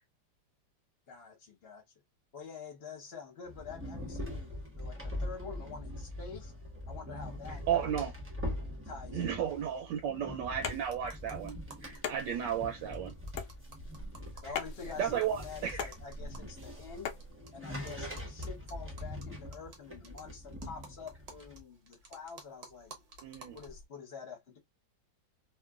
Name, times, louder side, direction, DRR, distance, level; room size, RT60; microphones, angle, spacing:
voice 1, 1.1-1.8 2.3-6.5 6.9-8.1 8.8-9.4 12.3-12.4 14.4-17.1 17.5-22.9 23.5-24.6, left 5 dB, 40° left, 1.0 m, -47 dB
sound 1, 3.5-21.6, left 1 dB, 20° right, 0.3 m, -43 dB
voice 2, 7.7-8.1 9.1-13.1 15.0-15.9 23.2-23.6, right 9 dB, 80° right, 1.3 m, -34 dB
sound 2, 10.5-17.3, left 6 dB, 75° left, 0.8 m, -42 dB
sound 3, 10.9-12.0 12.3-12.4 12.6-12.7 12.9-17.5 17.9-23.8, right 3 dB, 50° right, 0.8 m, -54 dB
3.0 x 2.5 x 2.3 m
omnidirectional pair, 2.0 m